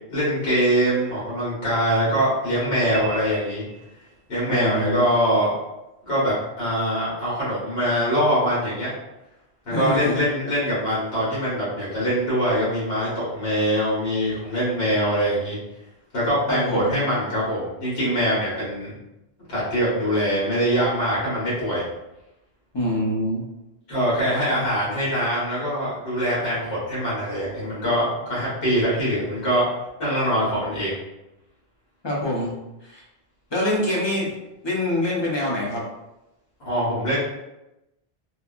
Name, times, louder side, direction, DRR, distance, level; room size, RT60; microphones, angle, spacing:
voice 1, 0.1-3.6 4.3-5.5 6.0-8.9 9.6-15.6 16.1-18.9 19.5-21.8 23.9-29.6 30.0-31.0 36.6-37.2, equal, 70° left, -8 dB, 1.5 m, -23 dB
sound 1, 2.9-4.5, right 5 dB, 60° right, 0.6 m, -37 dB
voice 2, 4.5-5.1 9.7-10.2 16.5-16.9 22.7-23.4 32.0-32.5 32.8-33.0 33.5-34.3 34.6-35.8, left 1 dB, 30° left, -4 dB, 0.5 m, -25 dB
2.8 x 2.3 x 2.4 m, 0.94 s
omnidirectional pair, 1.1 m